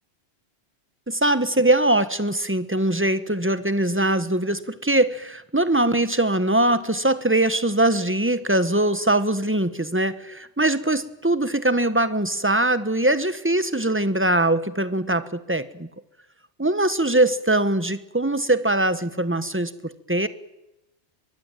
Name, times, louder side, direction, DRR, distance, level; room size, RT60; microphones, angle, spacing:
voice 1, 1.1-15.9 16.6-20.3, right 1 dB, 10° right, 12 dB, 1.3 m, -22 dB
23.0 x 22.0 x 9.1 m, 0.93 s
omnidirectional pair, 1.1 m